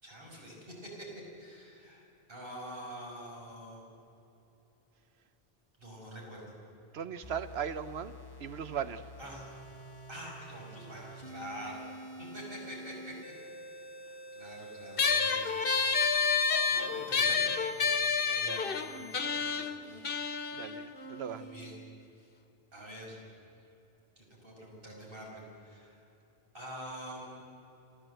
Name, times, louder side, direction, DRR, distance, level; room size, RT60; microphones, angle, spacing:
voice 1, 0.0-1.1 1.4-3.9 5.8-6.6 9.2-9.5 10.1-11.8 12.2-13.3 13.8-15.7 16.7-18.7 19.0-20.1 21.3-21.8 22.7-23.2 24.2-26.1 26.5-27.4, equal, 60° right, -3 dB, 5.5 m, -46 dB
voice 2, 6.9-8.1 8.4-9.1 16.9-17.1 20.5-21.4, right 8 dB, 85° right, 13 dB, 1.1 m, -38 dB
sound 1, 7.2-19.2, left 2 dB, 25° left, 1.2 m, -48 dB
sound 2, 15.0-21.8, left 5 dB, 60° left, 1.2 m, -30 dB
27.0 x 14.0 x 7.8 m, 2.9 s
omnidirectional pair, 1.0 m